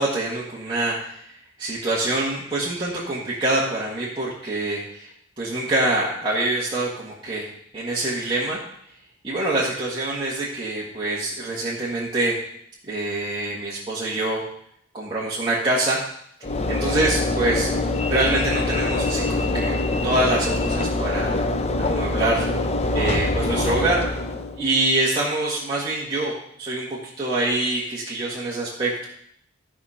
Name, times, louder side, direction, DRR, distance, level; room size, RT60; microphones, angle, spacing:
voice 1, 0.0-7.5 7.7-8.6 9.2-12.4 12.9-14.4 14.9-16.0 16.7-17.7 18.1-19.7 20.0-21.4 21.8-22.5 22.9-24.0 24.6-26.3 26.6-29.1, right 2 dB, 20° right, -7 dB, 1.7 m, -25 dB
Train / Engine / Alarm, 16.4-24.7, left 2 dB, 30° left, 0.7 m, -24 dB
14.0 x 5.0 x 5.7 m, 0.70 s
head